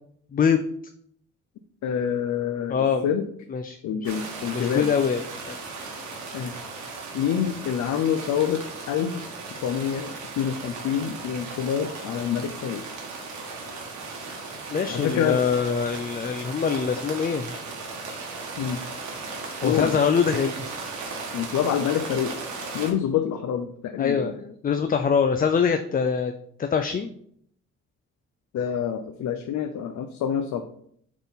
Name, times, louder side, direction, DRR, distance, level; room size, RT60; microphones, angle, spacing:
voice 1, 1.8-2.8 3.0-3.3 3.8-5.0 6.3-6.7 7.1-12.8 14.9-15.5 18.6-18.8 19.6-19.9 21.3-22.4 22.7-24.3 28.5-30.6, left 8 dB, 70° left, 7 dB, 0.6 m, -27 dB
voice 2, 2.7-3.0 3.5-3.8 4.5-5.2 5.5-5.6 14.7-17.5 19.6-20.7 24.0-26.3 26.6-27.1, left 6 dB, 30° left, 7 dB, 0.5 m, -23 dB
sound 1, 4.0-22.9, right 3 dB, 70° right, 1.6 m, -36 dB
7.2 x 3.8 x 4.1 m, 0.66 s
cardioid pair, 90°, 30 cm